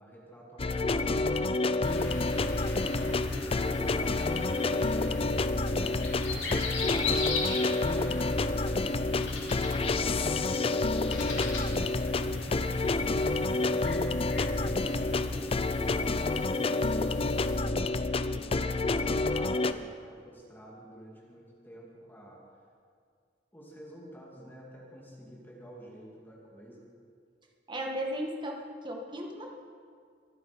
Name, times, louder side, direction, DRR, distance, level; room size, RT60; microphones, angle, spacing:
voice 1, 0.0-1.5 3.0-13.0 13.7-22.4 23.5-26.9, equal, 10° left, -3 dB, 2.5 m, -49 dB
sound 1, 0.6-19.7, left 3 dB, 30° left, 0.5 m, -29 dB
sound 2, 1.8-17.6, left 3 dB, 75° left, 2.9 m, -38 dB
voice 2, 27.7-29.5, equal, 25° right, 1 dB, 1.8 m, -35 dB
23.5 x 9.4 x 5.2 m, 2.2 s
head